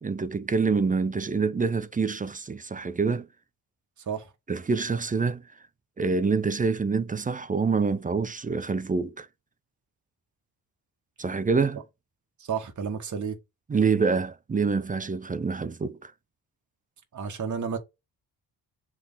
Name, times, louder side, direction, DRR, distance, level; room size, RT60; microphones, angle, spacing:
voice 1, 0.0-3.3 4.5-5.4 6.0-9.3 11.2-11.8 13.7-16.1, right 4 dB, 20° right, 0.5 m, -26 dB
voice 2, 4.0-4.3 12.4-13.4 17.1-17.8, right 6 dB, 45° right, 1.6 m, -31 dB
7.5 x 3.7 x 4.2 m
cardioid pair, 110°, 42 cm